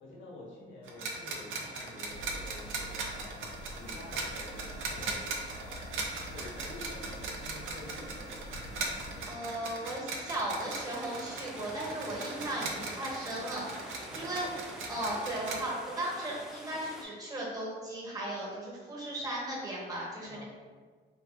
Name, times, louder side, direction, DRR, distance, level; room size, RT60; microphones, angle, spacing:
voice 1, 0.0-5.9 6.2-8.6 12.5-12.8 14.0-14.4 20.3-20.4, left 2 dB, 70° left, -4 dB, 1.0 m, -49 dB
sound 1, 0.9-15.6, right 3 dB, 90° right, 0.5 m, -39 dB
sound 2, 2.1-9.3, equal, 55° left, 0.5 m, -46 dB
voice 2, 9.3-14.5 14.9-20.4, right 1 dB, 20° right, -5 dB, 1.1 m, -36 dB
sound 3, 10.6-17.0, equal, 5° right, 0.3 m, -47 dB
3.3 x 2.6 x 2.3 m, 1.5 s
cardioid pair, 90°, 20 cm